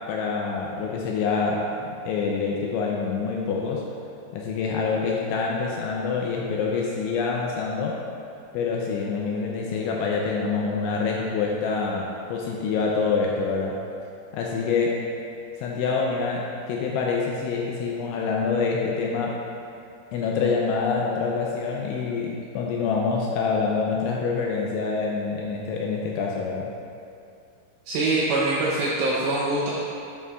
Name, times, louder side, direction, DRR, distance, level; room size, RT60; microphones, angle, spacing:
voice 1, 0.1-1.7 2.1-3.8 4.3-8.0 8.5-13.8 14.3-15.0 15.6-19.4 20.1-26.7, left 5 dB, 85° left, -2 dB, 2.8 m, -26 dB
voice 2, 27.9-29.7, right 2 dB, 80° right, -6 dB, 2.5 m, -24 dB
9.3 x 8.3 x 2.4 m, 2.5 s
omnidirectional pair, 5.8 m